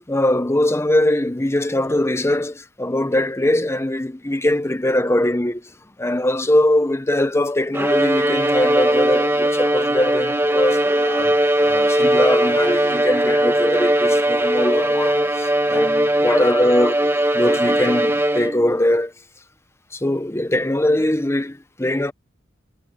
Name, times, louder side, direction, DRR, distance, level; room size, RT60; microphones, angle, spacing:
voice 1, 0.0-5.7 6.0-19.1 19.9-22.1, left 1 dB, 15° left, 1.0 m, -21 dB
Bowed string instrument, 7.7-18.8, right 1 dB, 10° right, 1.4 m, -19 dB
head